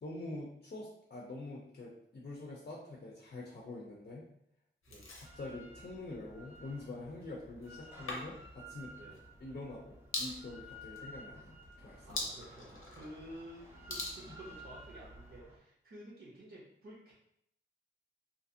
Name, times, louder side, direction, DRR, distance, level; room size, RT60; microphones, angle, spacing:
voice 1, 0.0-4.3 5.2-9.1 9.4-12.2, left 2 dB, 50° left, -3 dB, 0.5 m, -45 dB
sound 1, 4.8-15.4, left 2 dB, 90° left, 0.6 m, -46 dB
Drill, 5.2-15.6, equal, 10° right, 0.5 m, -54 dB
voice 2, 12.0-17.1, right 1 dB, 70° right, -5 dB, 0.8 m, -51 dB
2.8 x 2.5 x 2.6 m, 0.74 s
wide cardioid pair, 110°, 20 cm